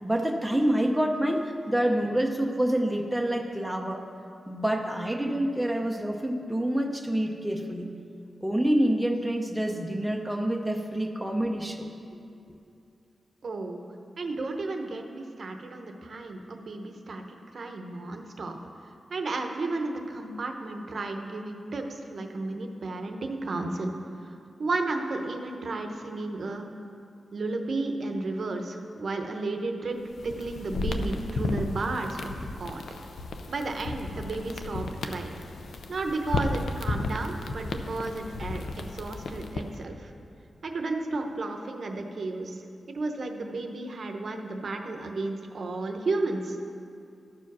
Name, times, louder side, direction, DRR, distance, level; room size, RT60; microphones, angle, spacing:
voice 1, 0.0-4.0 4.5-7.9 8.4-11.9, right 1 dB, ahead, 1 dB, 0.6 m, -27 dB
voice 2, 13.4-13.8 14.2-18.6 19.1-23.9 24.2-24.3 24.6-26.7 27.3-32.8 33.5-35.4 35.9-40.1 40.6-42.6 42.9-46.6, right 2 dB, 50° right, 4 dB, 0.7 m, -33 dB
sound 1, 30.0-39.8, left 3 dB, 85° left, 0.5 m, -34 dB
12.5 x 4.8 x 6.0 m, 2.6 s
wide cardioid pair, 165°, 0 cm